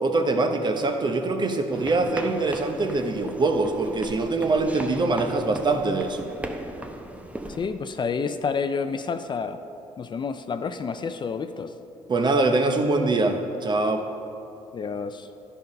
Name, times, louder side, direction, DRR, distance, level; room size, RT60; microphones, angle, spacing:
voice 1, 0.0-6.3 12.1-14.0, right 3 dB, 35° right, 6 dB, 0.9 m, -23 dB
sound 1, 1.7-7.7, right 1 dB, 10° right, 0.8 m, -37 dB
voice 2, 7.5-9.6 10.0-11.7 14.7-15.3, left 5 dB, 35° left, 10 dB, 0.5 m, -29 dB
10.5 x 5.5 x 5.3 m, 2.8 s
supercardioid pair, 70°, 13 cm